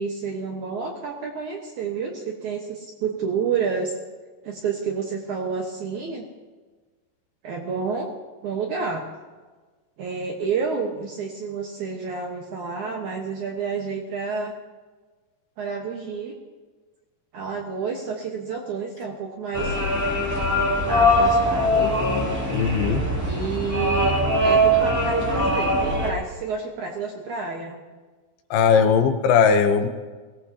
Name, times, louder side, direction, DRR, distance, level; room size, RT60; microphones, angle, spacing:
voice 1, 0.0-3.9 4.4-6.2 7.4-8.1 8.4-9.0 10.0-14.5 15.6-16.3 17.3-19.8 20.9-21.9 23.3-24.1 24.4-27.8, right 5 dB, 65° right, 0 dB, 2.0 m, -29 dB
sound 1, 19.5-26.1, equal, 10° right, 0.7 m, -21 dB
voice 2, 22.5-23.0 28.5-29.9, left 6 dB, 75° left, 6 dB, 2.6 m, -18 dB
23.0 x 18.0 x 2.8 m, 1.3 s
omnidirectional pair, 4.9 m